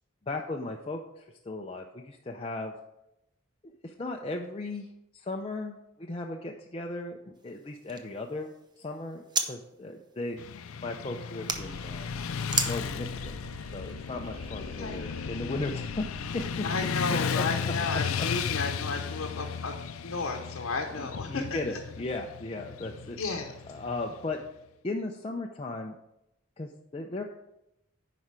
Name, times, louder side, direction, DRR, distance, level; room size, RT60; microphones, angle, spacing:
voice 1, 0.3-2.7 3.8-4.9 5.1-10.4 10.8-12.2 12.5-13.4 13.7-16.0 16.3-16.6 17.3-17.4 21.0-23.2 23.7-24.4 24.8-26.0 26.6-27.2, left 2 dB, 25° left, 1 dB, 0.5 m, -36 dB
sound 1, 7.4-9.5 9.8-11.6 12.5-12.7, right 4 dB, 20° right, 0.6 m, -35 dB
Motorcycle / Traffic noise roadway noise, 10.4-24.5, left 6 dB, 90° left, 0.5 m, -35 dB
sound 2, 11.5-17.0, right 1 dB, 75° right, 0.8 m, -46 dB
voice 2, 16.6-19.7 20.0-21.8 23.2-23.6, left 3 dB, 70° left, 1 dB, 0.9 m, -33 dB
9.8 x 5.0 x 4.7 m, 0.85 s
head